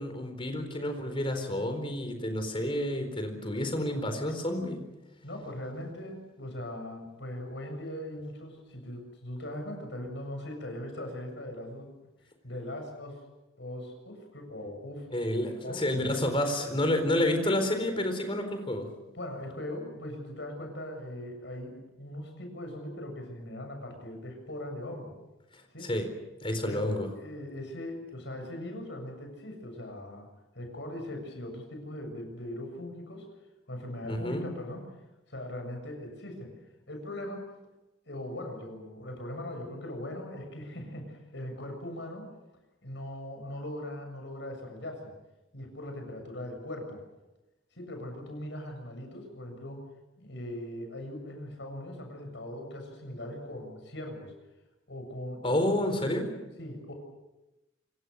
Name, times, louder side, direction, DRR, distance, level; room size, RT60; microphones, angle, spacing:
voice 1, 0.0-4.9 15.1-18.9 25.8-26.1 26.4-27.1 34.1-34.5 55.4-56.2, left 1 dB, 30° left, 6 dB, 4.2 m, -29 dB
voice 2, 5.2-11.9 12.4-13.2 13.6-15.1 15.6-16.1 16.9-17.0 19.2-25.1 25.7-25.9 26.6-26.9 27.2-30.3 30.6-33.3 33.7-34.8 35.3-36.5 36.9-37.5 38.1-42.3 42.8-45.1 45.5-47.0 47.7-49.8 50.2-54.3 54.9-55.6 56.0-56.1 56.6-56.9, left 1 dB, 65° left, 4 dB, 7.4 m, -40 dB
27.0 x 23.5 x 6.6 m, 1.0 s
head